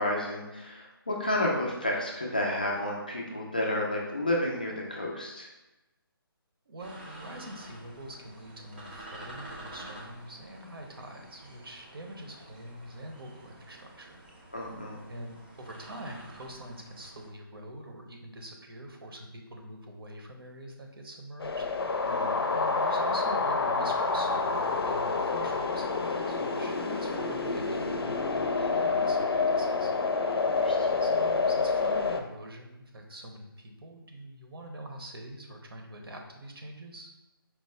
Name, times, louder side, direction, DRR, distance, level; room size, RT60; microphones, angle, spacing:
voice 1, 0.0-5.5 14.5-15.0 22.1-22.5 30.4-31.0, left 1 dB, 20° left, -2 dB, 0.3 m, -31 dB
voice 2, 6.7-14.2 15.1-21.6 22.5-29.9 31.0-37.1, right 1 dB, 70° right, 2 dB, 0.8 m, -44 dB
sound 1, 6.8-17.3, right 1 dB, 25° right, 0.6 m, -49 dB
sound 2, 21.4-32.2, left 4 dB, 80° left, 0.5 m, -28 dB
4.5 x 2.0 x 4.1 m, 1.0 s
hypercardioid pair, 175°, 13 cm